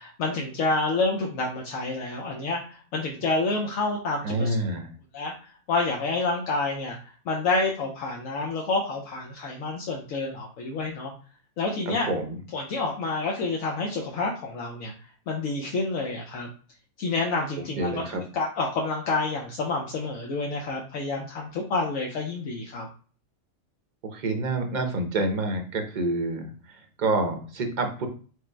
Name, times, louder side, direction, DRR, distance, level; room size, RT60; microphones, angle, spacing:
voice 1, 0.0-4.5 5.1-11.1 11.6-12.1 12.5-14.9 15.3-16.5 17.0-18.0 18.3-22.9, left 3 dB, 70° left, -1 dB, 1.1 m, -28 dB
voice 2, 4.2-4.9 11.9-12.4 17.8-18.2 24.1-28.1, right 2 dB, 45° right, 4 dB, 0.7 m, -28 dB
4.9 x 2.0 x 4.4 m, 0.40 s
omnidirectional pair, 1.5 m